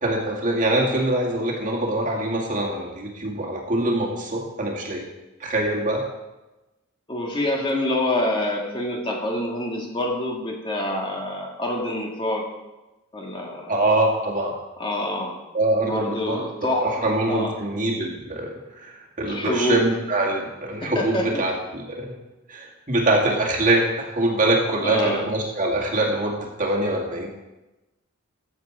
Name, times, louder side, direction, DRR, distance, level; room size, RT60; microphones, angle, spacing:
voice 1, 0.0-5.1 5.4-6.0 13.7-14.5 15.5-16.4 16.8-22.1 22.5-27.3, right 1 dB, 40° right, -2 dB, 2.2 m, -24 dB
voice 2, 7.1-12.5 13.1-13.7 14.8-15.4 15.8-17.6 19.3-19.9 20.8-21.4 24.8-25.3, left 1 dB, 25° left, -1 dB, 1.7 m, -26 dB
14.5 x 7.7 x 4.7 m, 1.0 s
head